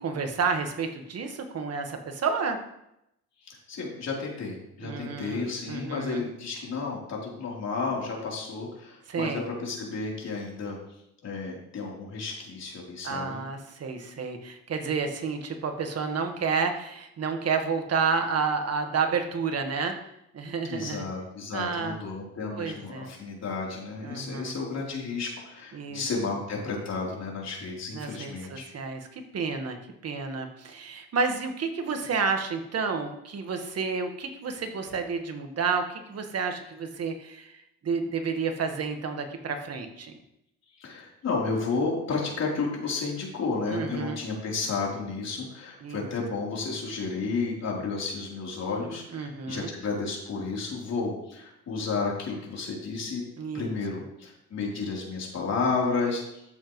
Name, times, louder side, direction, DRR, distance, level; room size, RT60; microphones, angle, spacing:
voice 1, 0.0-2.6 4.8-6.2 9.1-9.4 13.0-19.9 20.3-21.1 21.5-22.0 22.6-23.1 24.0-24.5 25.7-26.0 27.9-29.8 30.0-40.2 43.7-44.2 45.8-46.1 49.1-49.7 53.4-53.7, right 5 dB, 55° right, 5 dB, 1.5 m, -30 dB
voice 2, 3.4-10.8 11.2-13.4 20.7-28.7 40.8-53.2 53.5-56.4, left 4 dB, 60° left, -3 dB, 3.6 m, -32 dB
13.0 x 7.2 x 3.2 m, 0.82 s
cardioid pair, 90°, 30 cm